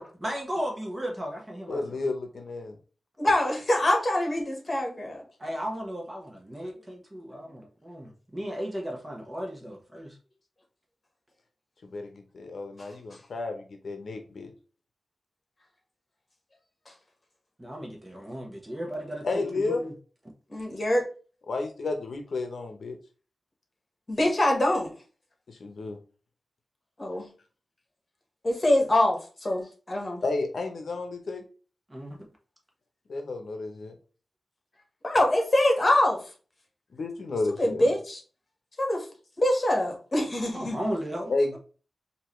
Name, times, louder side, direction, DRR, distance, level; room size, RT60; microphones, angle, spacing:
voice 1, 0.0-2.0 5.4-10.2 17.6-19.9 31.9-32.2 40.5-41.6, equal, 20° right, 0 dB, 1.2 m, -35 dB
voice 2, 1.7-2.8 11.8-14.5 19.2-19.8 21.5-23.0 25.5-26.0 30.2-31.4 33.1-33.9 36.9-37.9 41.3-41.6, left 3 dB, 75° left, 5 dB, 0.8 m, -31 dB
voice 3, 3.2-5.2 20.5-21.0 24.1-24.9 27.0-27.3 28.4-30.2 35.0-36.2 37.6-38.2 38.8-39.1 39.4-40.8, left 1 dB, 35° left, 1 dB, 1.4 m, -24 dB
4.6 x 2.8 x 3.1 m, 0.38 s
wide cardioid pair, 105°, 0 cm